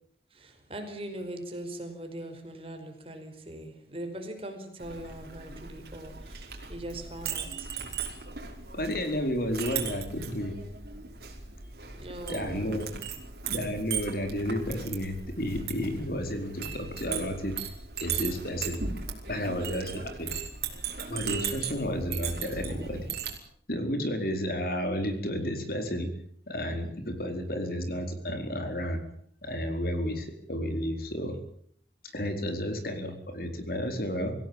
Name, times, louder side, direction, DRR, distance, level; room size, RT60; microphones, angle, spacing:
voice 1, 0.3-7.7 11.9-13.0, right 1 dB, 30° right, 5 dB, 5.1 m, -41 dB
Chink clink, 4.8-23.4, right 6 dB, 55° right, 5.3 m, -37 dB
voice 2, 8.7-10.5 12.3-12.9 13.5-17.6 18.0-18.8 19.3-20.3 21.1-23.1 23.7-26.1 26.5-29.0 29.4-31.4 32.1-34.3, equal, 55° left, 6 dB, 4.6 m, -32 dB
26.0 x 16.5 x 9.0 m, 0.63 s
head